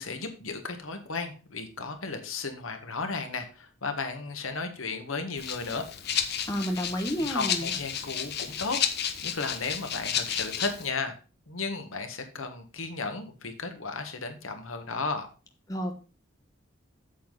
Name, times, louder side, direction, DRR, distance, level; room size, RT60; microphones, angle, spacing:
voice 1, 0.0-5.8 7.2-8.8 9.2-11.2 11.5-15.3, left 4 dB, 90° left, 6 dB, 1.7 m, -34 dB
Rattle (instrument), 5.4-10.9, left 8 dB, 50° left, 1.0 m, -32 dB
voice 2, 6.5-7.7 15.7-15.9, equal, 20° left, 4 dB, 1.2 m, -30 dB
8.4 x 7.6 x 4.0 m, 0.33 s
head